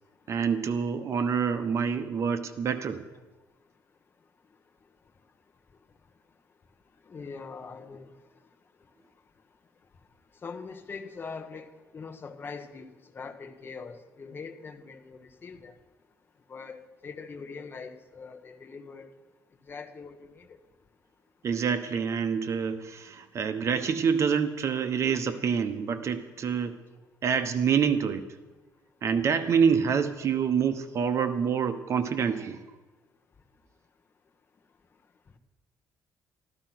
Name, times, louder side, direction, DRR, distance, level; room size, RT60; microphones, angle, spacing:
voice 1, 0.3-3.0 21.4-26.8 27.2-28.2 29.0-32.6, right 6 dB, 45° right, 9 dB, 1.1 m, -27 dB
voice 2, 7.1-8.1 10.4-12.9 13.1-15.7 16.5-19.1 19.7-20.6, left 5 dB, 35° left, 6 dB, 1.3 m, -42 dB
14.0 x 12.5 x 6.1 m, 1.1 s
cardioid pair, 115°, 7 cm